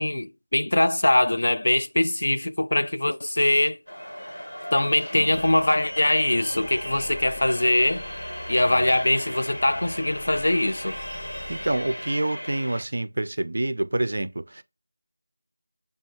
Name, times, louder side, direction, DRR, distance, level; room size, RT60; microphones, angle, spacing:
voice 1, 0.0-3.8 4.7-8.0 8.5-11.0, left 1 dB, 60° left, 0.3 m, -22 dB
sound 1, 3.9-12.8, equal, 90° left, 1.3 m, -37 dB
sound 2, 5.3-12.2, left 1 dB, 40° left, 0.9 m, -45 dB
voice 2, 11.5-14.6, right 1 dB, 60° right, 0.3 m, -27 dB
5.6 x 2.3 x 2.8 m
figure-of-eight pair, 170°, 0 cm